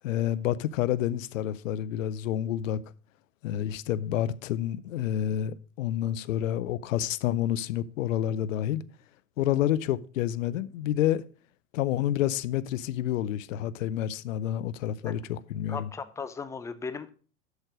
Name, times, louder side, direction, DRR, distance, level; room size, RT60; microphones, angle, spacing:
voice 1, 0.0-2.8 3.4-8.8 9.4-11.2 11.7-15.9, left 11 dB, 65° left, 0.7 m, -29 dB
voice 2, 15.7-17.1, left 5 dB, 5° left, 0.5 m, -37 dB
8.0 x 6.4 x 5.0 m
hypercardioid pair, 90°, 42 cm